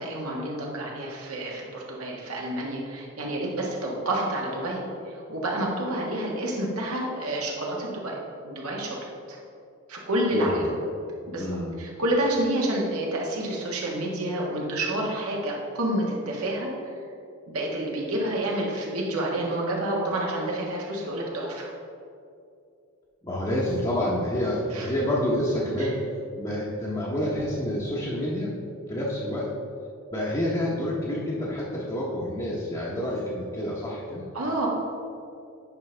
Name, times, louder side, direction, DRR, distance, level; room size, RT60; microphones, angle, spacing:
voice 1, 0.0-8.2 8.4-9.0 9.3-9.4 9.9-10.6 11.3-11.5 11.8-16.7 17.5-21.7 24.7-24.9 25.8-25.9 34.3-34.7, right 1 dB, 85° right, -2 dB, 1.5 m, -29 dB
voice 2, 10.3-10.7 11.4-11.7 23.2-26.0 26.4-28.6 28.9-29.5 30.1-34.3, left 1 dB, 20° left, -6 dB, 0.9 m, -28 dB
9.6 x 5.3 x 3.3 m, 2.5 s
head